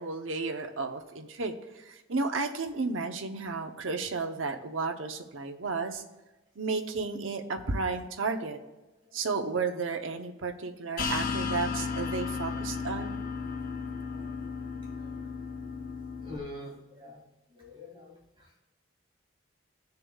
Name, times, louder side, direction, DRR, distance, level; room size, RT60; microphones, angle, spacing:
voice 1, 0.0-6.0 6.6-8.6 9.1-13.2, right 4 dB, 80° right, 5 dB, 0.9 m, -33 dB
sound 1, 11.0-16.4, left 5 dB, 45° left, 0.9 m, -34 dB
voice 2, 16.2-17.2 17.5-18.6, left 1 dB, 25° right, -3 dB, 2.5 m, -45 dB
15.0 x 6.8 x 2.4 m, 1.1 s
head